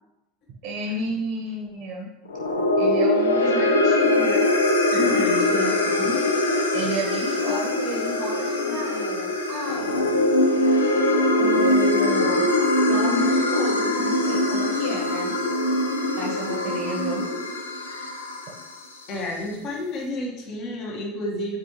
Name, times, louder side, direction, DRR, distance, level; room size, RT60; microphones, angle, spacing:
voice 1, 0.6-2.1 2.8-4.5 4.9-6.2 6.7-10.0 11.4-12.5 12.9-15.3 16.2-17.2, equal, 55° right, -1 dB, 1.1 m, -32 dB
sound 1, 2.3-18.7, left 1 dB, 80° left, 0.7 m, -22 dB
voice 2, 4.9-5.5 17.8-18.1 19.1-21.6, left 1 dB, 50° left, -1 dB, 1.5 m, -31 dB
8.4 x 4.4 x 3.1 m, 0.97 s
figure-of-eight pair, 75°, 0 cm